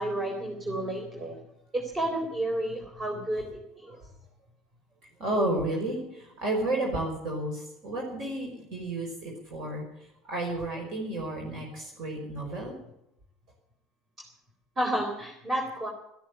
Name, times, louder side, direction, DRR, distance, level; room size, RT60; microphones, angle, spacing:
voice 1, 0.0-1.4 1.7-4.0 14.8-15.9, right 1 dB, 25° right, 2 dB, 3.7 m, -31 dB
voice 2, 5.2-12.8, right 1 dB, 55° right, 0 dB, 5.4 m, -32 dB
13.5 x 13.0 x 8.2 m, 0.81 s
hypercardioid pair, 75°, 0 cm